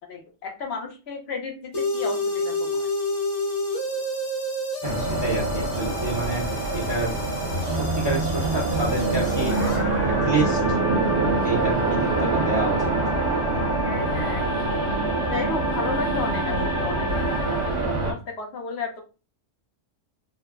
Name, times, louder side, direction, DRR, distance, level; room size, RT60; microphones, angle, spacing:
voice 1, 0.1-2.9 13.8-14.8 15.3-19.0, left 4 dB, 65° left, 2 dB, 0.9 m, -33 dB
sound 1, 1.7-17.7, left 1 dB, 80° left, 1.3 m, -30 dB
voice 2, 4.8-6.4 6.7-7.2 7.6-10.6 11.4-12.9, right 2 dB, 35° right, -3 dB, 0.5 m, -29 dB
sound 2, 4.8-18.1, right 3 dB, 60° right, 1.0 m, -25 dB
3.1 x 2.0 x 2.3 m, 0.31 s
omnidirectional pair, 1.3 m